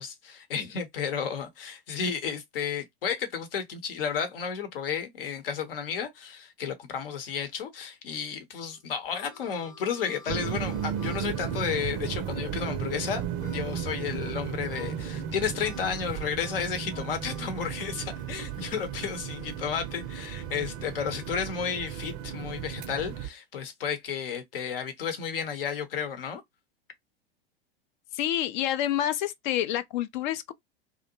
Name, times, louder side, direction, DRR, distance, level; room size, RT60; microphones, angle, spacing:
voice 1, 0.0-26.4, left 7 dB, 70° left, 0.8 m, -32 dB
Harmonica, 8.6-14.4 14.7-15.2 15.6-21.6, left 3 dB, 10° left, 0.7 m, -52 dB
sound 1, 10.3-23.3, right 9 dB, 35° right, 0.5 m, -35 dB
voice 2, 28.1-30.5, left 12 dB, 50° left, 0.5 m, -28 dB
2.6 x 2.1 x 2.7 m
figure-of-eight pair, 90°, 29 cm